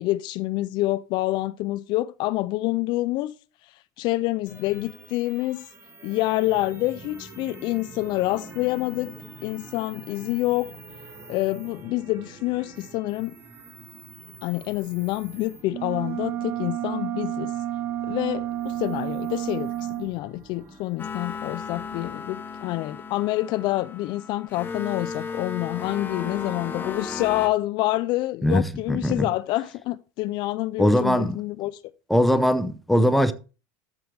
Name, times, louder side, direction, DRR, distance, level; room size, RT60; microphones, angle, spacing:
voice 1, 0.0-3.3 4.0-5.7 6.0-9.2 9.4-10.7 11.3-13.3 14.4-17.5 18.1-31.8, left 18 dB, 50° left, 0.4 m, -27 dB
sound 1, 4.5-22.1, right 3 dB, 25° right, 1.6 m, -46 dB
sound 2, 15.7-20.1, right 12 dB, 65° right, 0.7 m, -30 dB
sound 3, 21.0-27.5, left 5 dB, 20° left, 1.0 m, -35 dB
voice 2, 28.4-29.3 30.8-31.4 32.1-33.3, equal, ahead, 0.7 m, -21 dB
13.5 x 4.7 x 3.4 m
supercardioid pair, 120°, 10 cm